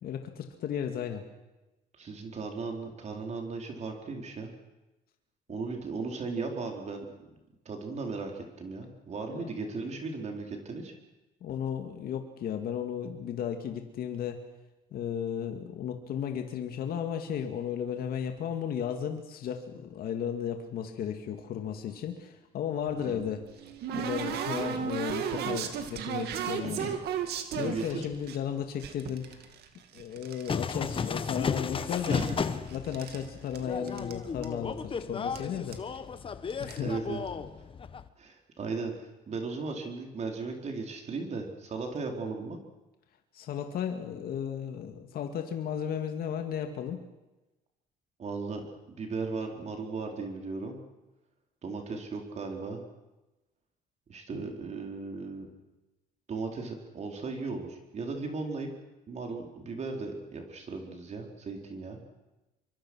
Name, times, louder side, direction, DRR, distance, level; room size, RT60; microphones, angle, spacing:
voice 1, 0.0-1.2 5.5-5.6 9.3-9.6 11.4-14.4 14.9-23.5 23.9-26.9 27.6-29.4 29.9-32.2 32.7-35.8 36.6-37.0 43.3-47.0, left 8 dB, 65° left, 5 dB, 2.2 m, -34 dB
voice 2, 2.0-4.5 5.5-7.1 7.6-10.9 23.0-23.3 26.8-27.0 27.5-28.1 32.1-32.4 36.8-37.2 38.2-42.6 48.2-50.8 51.6-52.8 54.1-55.5 56.3-58.7 59.1-62.0, right 4 dB, 40° right, 2 dB, 4.3 m, -36 dB
sound 1, 22.9-28.4 28.8-30.6 30.9-31.6 31.9-33.2 33.5-33.6 33.9-34.1 34.4-34.5 35.4-35.5 35.7-36.0 36.5-36.8, right 8 dB, 70° right, 2.3 m, -35 dB
sound 2, 30.5-38.1, left 5 dB, 30° left, 1.2 m, -34 dB
26.0 x 24.0 x 6.4 m, 1.0 s
cardioid pair, 110°, 17 cm